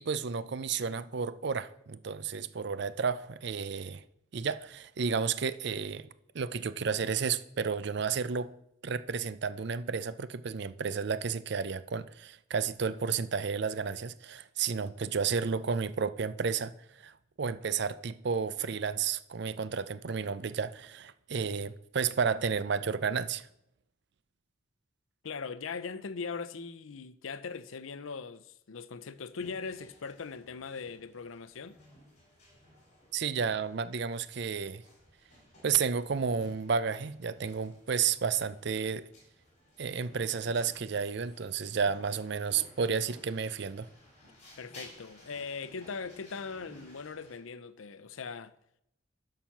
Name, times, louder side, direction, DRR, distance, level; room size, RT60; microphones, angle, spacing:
voice 1, 0.0-4.0 4.3-6.1 6.3-8.5 8.8-17.1 17.4-23.5 33.1-34.8 35.6-39.1 39.8-43.9, right 6 dB, 60° right, 0.5 m, -32 dB
voice 2, 25.2-31.8 44.6-48.5, left 5 dB, 90° left, 0.6 m, -40 dB
sound 1, 29.4-47.4, equal, 35° left, 4.9 m, -57 dB
11.5 x 5.8 x 6.0 m
head